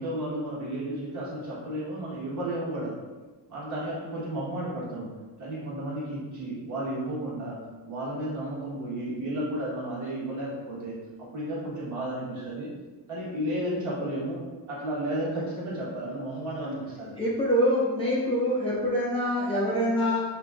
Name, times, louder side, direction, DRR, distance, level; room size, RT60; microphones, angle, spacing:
voice 1, 0.0-2.9 3.5-5.1 5.4-7.6 7.8-12.7 13.1-17.2, right 1 dB, 45° right, -8 dB, 1.4 m, -33 dB
voice 2, 17.2-20.2, equal, 15° left, -7 dB, 0.3 m, -25 dB
5.6 x 2.2 x 2.4 m, 1.3 s
cardioid pair, 170°, 41 cm